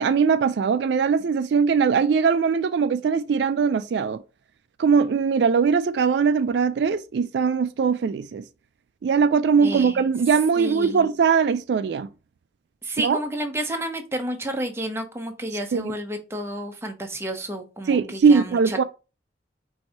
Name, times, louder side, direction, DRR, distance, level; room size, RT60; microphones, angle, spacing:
voice 1, 0.0-4.2 4.8-8.4 9.0-12.1 13.0-13.2 15.7-15.9 17.9-18.8, right 5 dB, 75° right, 0.3 m, -21 dB
voice 2, 9.6-10.0 10.6-11.0 12.8-18.8, right 1 dB, 15° right, 0.7 m, -31 dB
4.6 x 2.7 x 4.2 m
head